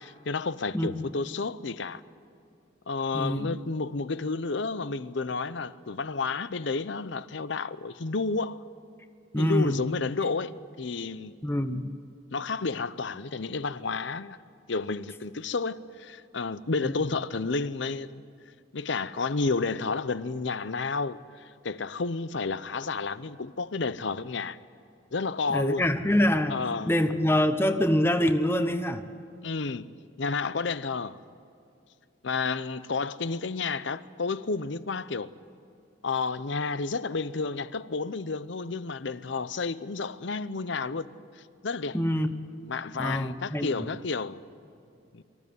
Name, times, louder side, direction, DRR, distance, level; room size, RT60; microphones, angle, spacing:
voice 1, 0.0-2.0 2.9-8.6 9.4-11.3 12.3-14.4 14.7-18.2 18.7-21.2 21.6-24.6 25.1-25.9 26.5-26.9 29.4-29.9 30.2-31.2 32.2-35.3 36.0-41.1 41.6-42.0 42.6-44.4 45.1-45.2, left 4 dB, 65° left, 0.7 m, -31 dB
voice 2, 3.1-3.5 9.3-9.8 11.4-11.9 16.8-16.9 25.5-26.6 26.9-29.0 41.9-42.5 43.0-43.7, left 1 dB, 10° left, 1.0 m, -25 dB
24.5 x 15.0 x 9.4 m
head